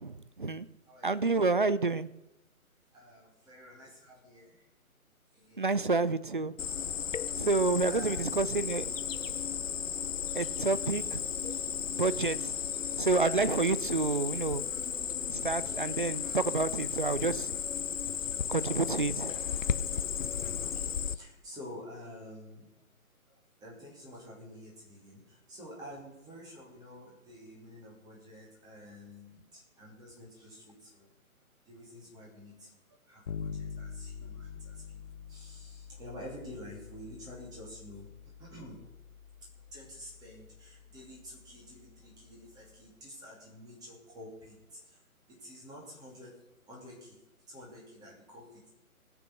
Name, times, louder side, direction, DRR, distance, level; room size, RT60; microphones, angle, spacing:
voice 1, 0.0-0.7 1.0-2.1 5.6-6.6 7.3-9.0 10.3-11.5 11.9-12.5 13.0-14.7 15.3-17.5 18.5-19.4, right 3 dB, 40° right, 16 dB, 0.4 m, -29 dB
voice 2, 0.9-1.3 2.9-4.6 5.3-5.7 7.8-8.2 20.6-22.7 23.3-31.1 31.7-34.8 35.3-38.1 38.4-38.8 39.7-45.0 45.4-46.3 46.7-47.2 47.5-48.7, equal, 10° right, -3 dB, 2.8 m, -49 dB
Cricket, 6.6-21.1, left 7 dB, 60° left, 0.8 m, -34 dB
Bass guitar, 33.3-42.9, left 6 dB, 35° left, 1.1 m, -46 dB
19.5 x 7.2 x 6.2 m, 0.97 s
figure-of-eight pair, 150°, 44 cm